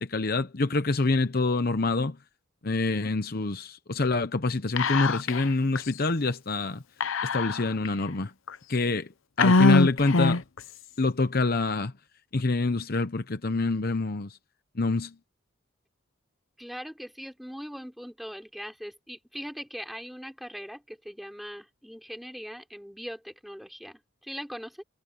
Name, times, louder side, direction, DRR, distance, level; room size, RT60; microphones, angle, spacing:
voice 1, 0.0-2.2 2.6-6.8 7.3-8.3 8.7-9.1 9.4-10.4 11.0-11.9 12.3-14.4 14.8-15.1, left 3 dB, 50° left, 0.9 m, -26 dB
Whispering, 4.8-5.5 5.8-5.9 7.0-7.9 8.5-8.6 9.4-10.6, left 3 dB, 80° left, 0.8 m, -22 dB
voice 2, 16.6-24.8, equal, ahead, 4.1 m, -40 dB
head